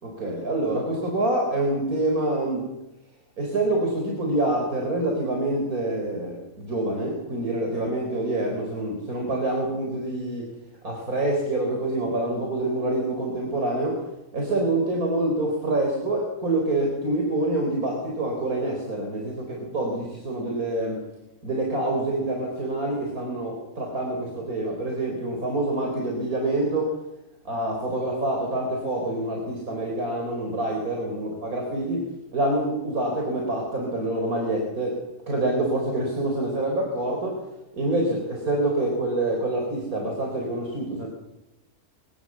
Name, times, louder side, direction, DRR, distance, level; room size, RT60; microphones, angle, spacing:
voice 1, 0.0-2.7 3.4-10.5 10.8-14.0 14.3-21.0 21.4-26.9 27.4-37.5 37.7-41.1, right 2 dB, 85° right, 1 dB, 4.6 m, -26 dB
24.5 x 17.5 x 7.4 m, 0.93 s
omnidirectional pair, 1.5 m